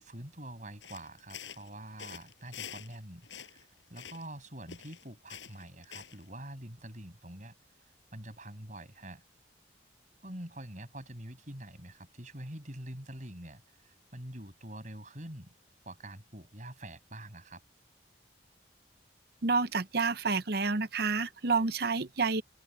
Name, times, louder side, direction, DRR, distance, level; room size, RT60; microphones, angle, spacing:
voice 1, 0.0-7.6 8.1-9.2 10.2-15.5 15.8-17.6, right 1 dB, 40° right, 6.8 m, -46 dB
sound 1, 0.8-3.0 3.2-4.4 4.7-6.3, left 8 dB, 85° left, 6.1 m, -47 dB
voice 2, 19.4-22.4, right 4 dB, 55° right, 0.8 m, -29 dB
head